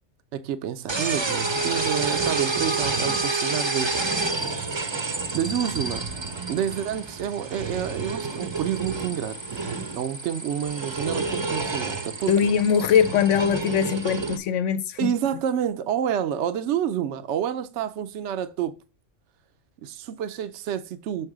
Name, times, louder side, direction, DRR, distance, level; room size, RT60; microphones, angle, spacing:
voice 1, 0.3-4.1 5.1-6.0 6.5-9.4 9.9-12.3 15.0-18.7 19.8-21.3, right 9 dB, 75° right, 0.9 m, -29 dB
sound 1, 0.9-14.4, right 3 dB, 30° right, 0.6 m, -29 dB
voice 2, 12.3-15.1, left 8 dB, 85° left, 1.0 m, -21 dB
6.3 x 4.6 x 4.9 m
omnidirectional pair, 1.2 m